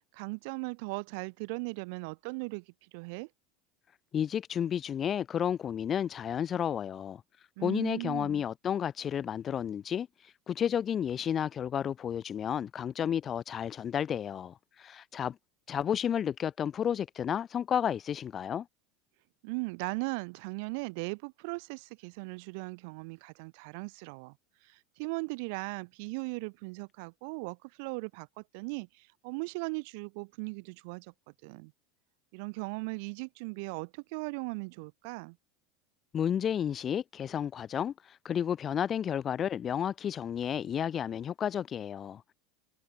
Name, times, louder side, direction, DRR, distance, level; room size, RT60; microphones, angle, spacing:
voice 1, 0.1-3.3 7.6-8.4 19.4-24.4 24.6-31.1 31.4-31.7 32.3-35.4, right 32 dB, 55° right, 0.3 m, -38 dB
voice 2, 4.1-7.2 7.6-10.1 10.5-15.4 15.7-18.7 36.1-42.3, left 9 dB, 20° left, 0.5 m, -32 dB
supercardioid pair, 170°, 0 cm